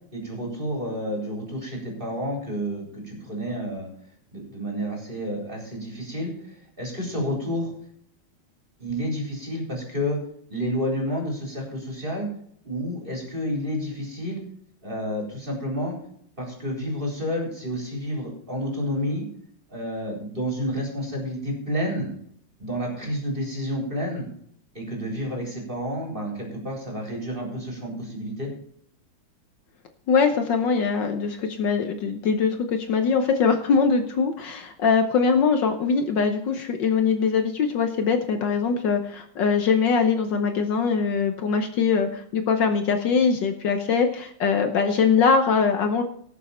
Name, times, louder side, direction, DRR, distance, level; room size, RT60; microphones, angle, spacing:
voice 1, 0.1-3.9 4.3-7.7 8.8-10.2 10.5-12.3 12.6-14.4 14.8-16.0 16.4-19.3 19.7-22.1 22.6-24.3 24.7-28.5, equal, 25° right, 0 dB, 4.2 m, -30 dB
voice 2, 30.1-46.0, left 5 dB, 65° left, 6 dB, 1.5 m, -22 dB
18.5 x 7.2 x 4.3 m, 0.66 s
omnidirectional pair, 2.3 m